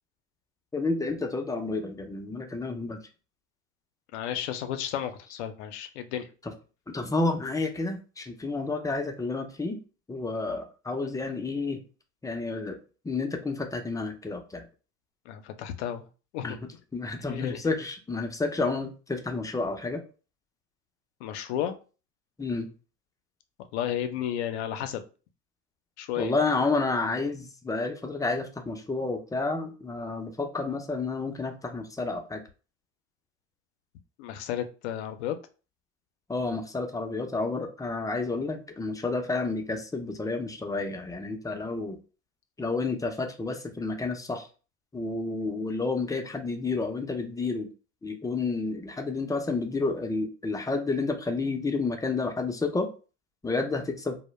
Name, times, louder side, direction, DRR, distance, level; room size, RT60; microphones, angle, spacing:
voice 1, 0.7-3.0 6.9-9.8 10.1-11.8 12.2-12.8 13.0-14.6 16.4-16.5 16.9-20.0 22.4-22.7 26.2-32.4 36.3-42.0 42.6-44.5 44.9-47.7 48.0-52.9 53.4-54.2, left 3 dB, 10° left, 4 dB, 0.4 m, -30 dB
voice 2, 4.1-6.3 15.3-16.1 16.3-16.6 17.3-17.6 21.2-21.8 23.7-25.0 26.0-26.3 34.2-35.4, left 10 dB, 80° left, 9 dB, 0.5 m, -32 dB
2.1 x 2.0 x 3.0 m, 0.35 s
hypercardioid pair, 80°, 33 cm